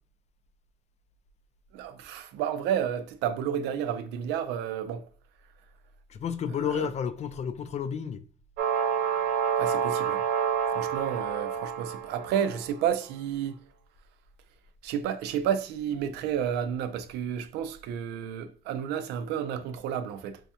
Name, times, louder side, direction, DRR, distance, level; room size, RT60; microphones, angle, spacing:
voice 1, 1.7-5.1 6.7-6.9 9.6-10.2 10.7-13.6 14.8-20.4, right 9 dB, 90° right, 0.5 m, -31 dB
voice 2, 6.1-8.2, left 8 dB, 40° left, 0.4 m, -31 dB
sound 1, 8.6-12.6, right 7 dB, 70° right, 0.8 m, -28 dB
5.2 x 2.3 x 2.8 m
cardioid pair, 110°, 17 cm